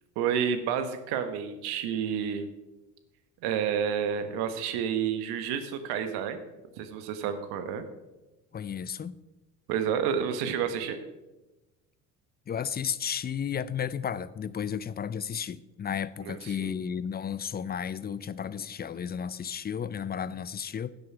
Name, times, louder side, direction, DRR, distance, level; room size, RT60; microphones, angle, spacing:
voice 1, 0.2-2.5 3.4-6.4 6.8-7.8 9.7-11.0 16.2-16.7, right 8 dB, 70° right, 9 dB, 1.3 m, -30 dB
voice 2, 8.5-9.2 12.5-20.9, left 8 dB, 25° left, 18 dB, 0.5 m, -33 dB
10.5 x 7.9 x 5.6 m, 1.1 s
hypercardioid pair, 65°, 40 cm